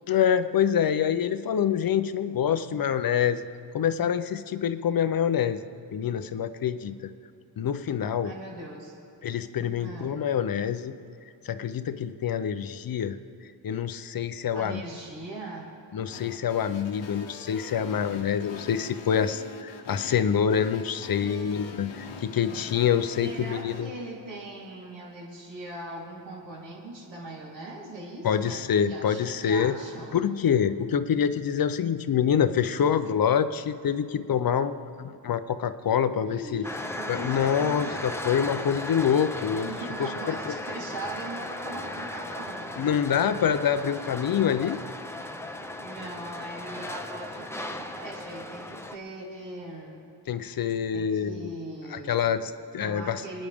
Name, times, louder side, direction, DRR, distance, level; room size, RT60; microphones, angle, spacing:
voice 1, 0.1-3.4 3.7-5.6 5.9-7.0 7.6-8.3 9.2-10.9 11.4-13.2 13.6-14.8 15.9-23.9 28.2-29.8 30.1-36.6 37.1-39.7 40.0-40.3 42.8-44.8 50.3-51.5 51.9-53.2, left 8 dB, 50° left, 11 dB, 0.6 m, -26 dB
voice 2, 8.2-9.0 9.8-10.2 14.5-15.7 21.2-21.5 23.2-30.2 36.3-38.2 39.6-42.7 44.5-44.8 45.8-50.0 50.9-52.1 52.8-53.5, right 2 dB, 70° right, -5 dB, 3.7 m, -40 dB
sound 1, 16.1-23.9, left 5 dB, 75° left, 1.2 m, -43 dB
sound 2, 36.6-49.0, left 1 dB, 5° left, 0.6 m, -36 dB
25.5 x 9.9 x 3.6 m, 2.6 s
wide cardioid pair, 130°, 45 cm